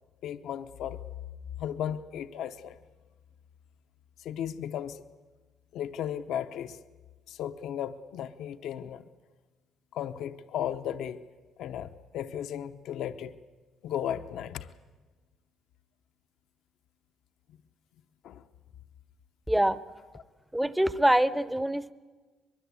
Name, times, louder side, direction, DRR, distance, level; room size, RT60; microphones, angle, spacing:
voice 1, 0.2-1.0 1.6-2.8 4.2-5.0 5.7-6.8 7.3-9.1 9.9-11.2 11.6-13.3 13.8-14.7 18.2-18.4, left 10 dB, 70° left, 10 dB, 0.8 m, -35 dB
voice 2, 19.5-19.8 20.5-21.9, right 1 dB, 5° right, 16 dB, 0.6 m, -24 dB
23.0 x 22.0 x 8.3 m, 1.3 s
cardioid pair, 155°, 0 cm